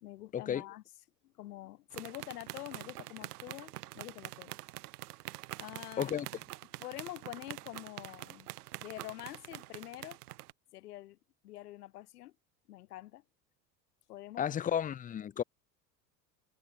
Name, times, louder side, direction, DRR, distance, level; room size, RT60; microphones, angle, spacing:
voice 1, 0.0-0.8 1.2-4.6 5.6-6.1 6.8-8.5 8.8-10.2 10.7-11.2 11.4-12.3 12.7-13.2 14.1-14.6, left 15 dB, 70° left, 1.8 m, -46 dB
sound 1, 1.9-10.5, right 17 dB, 70° right, 1.1 m, -46 dB
voice 2, 14.4-15.4, left 9 dB, 20° left, 0.5 m, -33 dB
hypercardioid pair, 80°, 47 cm